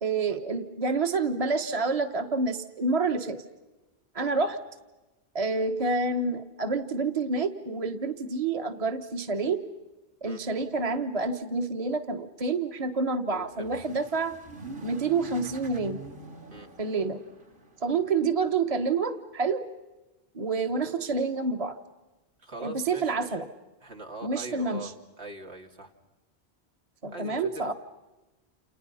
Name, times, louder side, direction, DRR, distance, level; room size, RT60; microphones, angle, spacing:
voice 1, 0.0-3.4 4.1-4.6 5.3-9.7 10.2-14.4 14.8-16.0 16.8-17.2 17.8-19.7 20.3-21.8 22.6-23.5 24.2-24.9 27.0-27.7, right 4 dB, 35° right, 7 dB, 1.3 m, -28 dB
voice 2, 13.3-13.7 16.5-16.7 22.4-23.3 23.8-24.9 25.2-25.9 27.0-27.5, right 2 dB, 80° right, 3 dB, 2.8 m, -42 dB
sound 1, 13.4-18.1, right 3 dB, 50° right, 2.2 m, -45 dB
29.5 x 29.0 x 5.6 m, 1.1 s
omnidirectional pair, 1.1 m